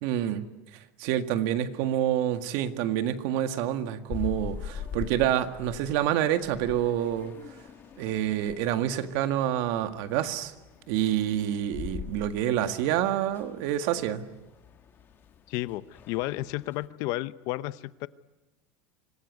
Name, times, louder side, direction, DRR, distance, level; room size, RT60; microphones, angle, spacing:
voice 1, 0.0-0.4 1.0-7.3 8.0-10.5 10.9-14.3, right 11 dB, 60° right, 9 dB, 1.8 m, -27 dB
sound 1, 4.1-16.9, left 7 dB, 25° left, 1.5 m, -43 dB
voice 2, 15.5-18.1, left 17 dB, 50° left, 16 dB, 0.8 m, -32 dB
26.0 x 18.5 x 9.5 m, 1.1 s
supercardioid pair, 160°, 8 cm